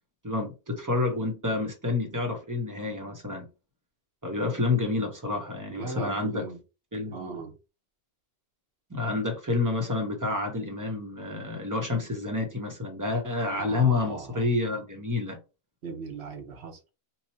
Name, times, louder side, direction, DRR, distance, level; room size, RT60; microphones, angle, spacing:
voice 1, 0.2-3.5 4.2-6.4 6.9-7.4 8.9-15.4, left 3 dB, 20° right, 0.8 m, -29 dB
voice 2, 5.7-6.6 7.1-7.5 13.6-14.4 15.8-16.9, right 4 dB, 85° right, 1.2 m, -38 dB
2.9 x 2.3 x 4.1 m
omnidirectional pair, 1.1 m